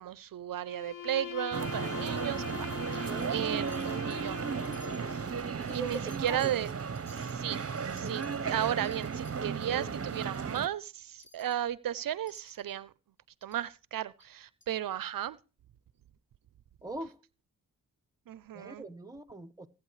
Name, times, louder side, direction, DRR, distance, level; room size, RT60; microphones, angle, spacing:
voice 1, 0.0-4.5 5.7-6.7 7.1-7.6 7.9-12.9 13.4-15.4 18.3-18.8, right 11 dB, 75° right, 0.6 m, -35 dB
Bowed string instrument, 0.6-5.5, left 9 dB, 70° left, 1.4 m, -42 dB
sound 1, 1.5-10.7, right 6 dB, 45° right, 1.0 m, -35 dB
Wind chime, 2.1-2.6 2.9-3.4 3.7-4.3 4.6-9.4 9.8-9.9 10.1-10.6 11.2-11.6 12.3-12.7 13.4-13.6 14.2-14.3 14.6-14.7, left 2 dB, 35° left, 2.7 m, -59 dB
voice 2, 3.1-3.5 5.6-6.5 8.2-8.6 16.8-17.2 18.5-19.7, right 2 dB, 10° right, 1.3 m, -42 dB
21.0 x 8.8 x 3.2 m
cardioid pair, 55°, 34 cm